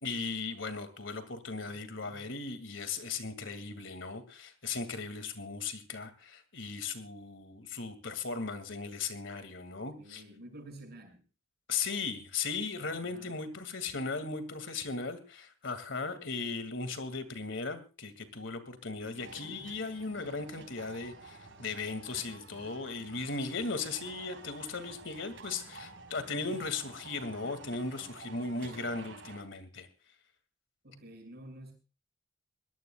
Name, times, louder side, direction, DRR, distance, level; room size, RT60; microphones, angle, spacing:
voice 1, 0.0-10.2 11.7-29.9, left 4 dB, 70° left, 10 dB, 2.4 m, -37 dB
voice 2, 1.7-2.3 10.0-11.2 12.8-13.4 19.0-20.4 26.3-26.6 30.8-31.7, right 1 dB, 55° right, 5 dB, 6.7 m, -51 dB
sound 1, 19.2-29.4, right 3 dB, 75° right, 5.0 m, -51 dB
22.5 x 18.5 x 2.4 m, 0.34 s
head